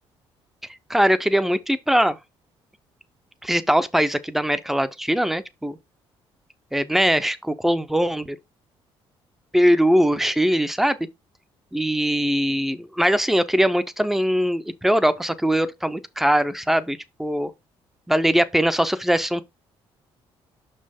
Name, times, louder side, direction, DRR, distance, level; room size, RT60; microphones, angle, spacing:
voice 1, 0.9-2.2 3.4-5.8 6.7-8.4 9.5-11.0 11.7-17.5 18.1-19.4, equal, 5° right, 0.5 m, -21 dB
6.1 x 5.3 x 3.4 m
cardioid pair, 155°, 10 cm